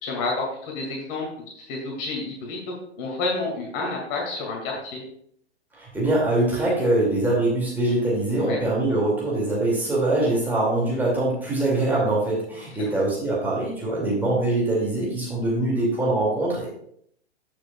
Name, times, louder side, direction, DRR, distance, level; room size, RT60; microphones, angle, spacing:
voice 1, 0.0-5.0 8.4-8.6 12.7-12.9, left 3 dB, 30° left, 0 dB, 2.4 m, -30 dB
voice 2, 5.7-16.7, right 2 dB, 5° right, -5 dB, 2.5 m, -23 dB
13.5 x 7.0 x 2.4 m, 0.68 s
figure-of-eight pair, 115°, 34 cm